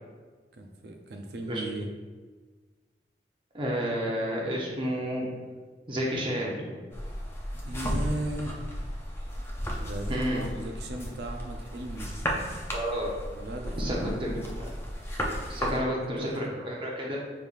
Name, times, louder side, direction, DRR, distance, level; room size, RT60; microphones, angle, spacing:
voice 1, 0.5-1.9 7.6-8.6 9.8-12.1 13.3-14.2 15.5-15.9 16.2-16.6, right 1 dB, 70° right, 3 dB, 0.5 m, -37 dB
voice 2, 3.5-5.3 5.9-6.6 10.1-10.4 12.7-13.1 13.8-14.7 15.5-17.2, equal, 30° right, -3 dB, 0.7 m, -30 dB
sound 1, 6.9-15.8, equal, 15° left, 0.4 m, -34 dB
5.3 x 3.3 x 2.4 m, 1.4 s
head